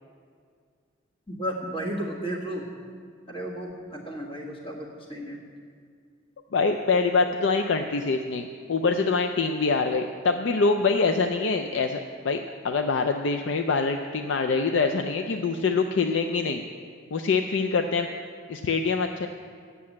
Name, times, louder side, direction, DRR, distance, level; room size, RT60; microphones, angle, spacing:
voice 1, 1.3-2.6 3.3-5.4, right 1 dB, 30° left, -3 dB, 1.7 m, -33 dB
voice 2, 6.5-16.6 17.1-18.1 18.5-19.3, left 4 dB, 70° left, 6 dB, 0.4 m, -25 dB
8.5 x 6.9 x 8.5 m, 2.1 s
head